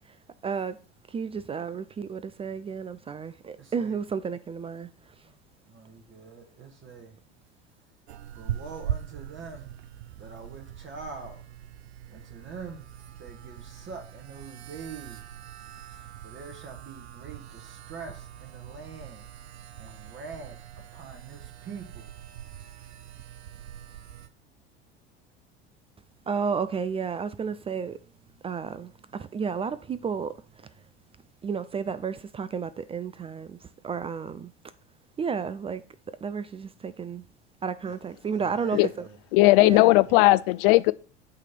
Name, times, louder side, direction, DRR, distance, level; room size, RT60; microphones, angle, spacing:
voice 1, 0.4-0.8 1.1-4.9 26.3-28.0 28.4-30.3 31.4-34.5 35.2-35.8 36.2-37.3 37.6-39.1 39.6-39.9, right 6 dB, 20° right, 0.4 m, -32 dB
voice 2, 3.6-4.0 5.2-5.3 5.7-7.2 8.3-9.7 10.2-11.4 12.1-12.9 13.2-15.4 16.2-19.3 19.8-22.1 37.8-38.0 38.3-39.2, right 5 dB, 35° right, 1.5 m, -44 dB
sound 1, 8.1-24.3, right 10 dB, 75° right, 0.6 m, -41 dB
voice 3, 39.3-40.9, left 20 dB, 55° left, 0.4 m, -18 dB
8.2 x 3.3 x 5.8 m
figure-of-eight pair, 75°, 32 cm